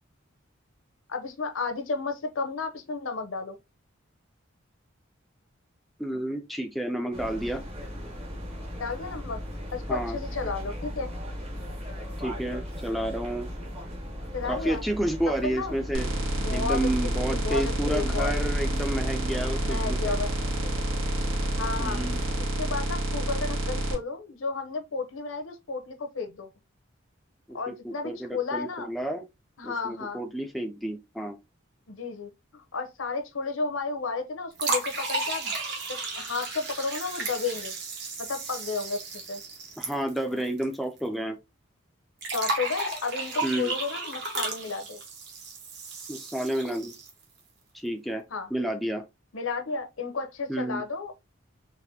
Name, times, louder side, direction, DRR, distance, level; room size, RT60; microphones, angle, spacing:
voice 1, 1.1-3.6 8.8-9.4 9.7-11.1 14.3-14.8 15.4-15.8 16.4-16.9 17.3-18.3 19.6-20.3 21.6-22.0 22.4-26.5 27.5-28.9 29.6-30.2 31.9-35.6 35.9-37.8 38.3-39.4 42.3-45.0 48.3-48.5 49.3-51.2, left 4 dB, 80° left, 0.7 m, -32 dB
voice 2, 6.0-7.6 9.9-10.2 12.2-13.5 14.5-16.1 16.5-20.1 21.8-22.2 27.5-27.6 27.8-29.2 29.6-31.4 39.8-41.4 43.4-43.7 46.1-46.9 47.7-48.2 48.5-49.0 50.5-50.8, right 1 dB, ahead, 0.4 m, -30 dB
sound 1, 7.1-22.4, equal, 30° right, 0.9 m, -36 dB
sound 2, 15.9-23.9, right 1 dB, 85° right, 1.5 m, -29 dB
sound 3, 34.6-40.7 41.0-41.1 42.2-47.2, right 3 dB, 55° right, 1.1 m, -34 dB
4.1 x 2.6 x 2.7 m
head